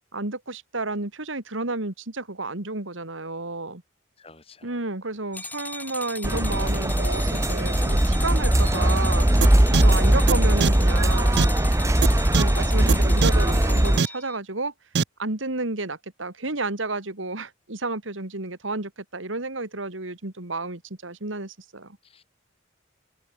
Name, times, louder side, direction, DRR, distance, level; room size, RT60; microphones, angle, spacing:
voice 1, 0.1-3.8 4.6-11.4 12.3-14.7 15.2-22.0, right 2 dB, 85° right, 2.7 m, -31 dB
voice 2, 4.2-4.7 8.5-8.8 22.0-22.3, left 3 dB, 30° left, 6.2 m, -50 dB
sound 1, 5.3-14.4, left 3 dB, 10° left, 1.8 m, -37 dB
sound 2, 6.2-14.0, right 1 dB, 15° right, 0.8 m, -20 dB
sound 3, 9.4-9.5 9.7-9.8 10.3-10.4 10.6-10.7 11.4-11.5 12.0-12.1 12.3-12.4 12.9-13.0 13.2-13.3 14.0-14.1 14.9-15.0, right 5 dB, 60° right, 0.6 m, -20 dB
open air
head